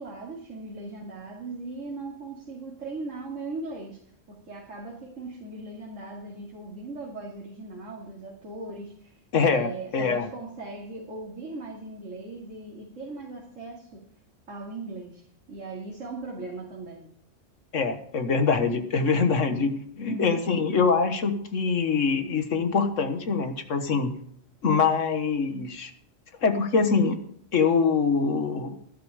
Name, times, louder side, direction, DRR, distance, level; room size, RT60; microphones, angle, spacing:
voice 1, 0.0-4.0 4.3-14.1 14.5-17.1 19.5-19.7 20.0-20.4, right 3 dB, 75° right, -3 dB, 2.7 m, -39 dB
voice 2, 9.3-10.3 17.7-24.2 24.6-25.9 26.4-27.2 27.5-28.8, left 5 dB, 75° left, 8 dB, 1.7 m, -24 dB
12.0 x 12.0 x 4.9 m, 0.65 s
omnidirectional pair, 1.3 m